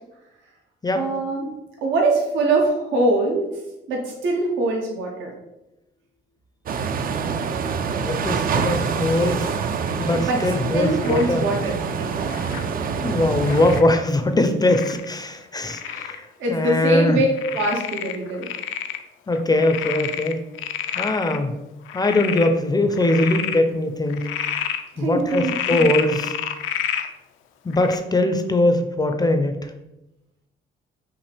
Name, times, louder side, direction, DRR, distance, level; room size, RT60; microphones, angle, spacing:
voice 1, 0.9-1.5 1.8-3.5 3.9-5.3 10.1-10.4 10.7-12.5 15.8-16.1 16.4-17.3 17.5-18.5 25.0-25.9, right 2 dB, 80° right, 0 dB, 0.9 m, -23 dB
sound 1, 6.7-13.8, right 6 dB, 45° right, 0.4 m, -26 dB
voice 2, 8.0-9.5 10.0-11.4 13.0-17.2 19.3-20.4 21.0-21.5 21.9-24.3 25.0-26.4 27.6-29.6, left 2 dB, 20° left, 7 dB, 0.5 m, -21 dB
Frog, 11.0-11.4 12.3-12.7 13.4-13.9 14.7-15.1 15.7-16.2 16.6-16.7 17.4-19.0 19.3-21.4 21.9-22.5 22.9-23.6 24.1-24.8 25.3-27.1 27.7-28.0, left 9 dB, 85° left, 0.4 m, -29 dB
5.6 x 2.5 x 3.3 m, 0.93 s
cardioid pair, 90°, 20 cm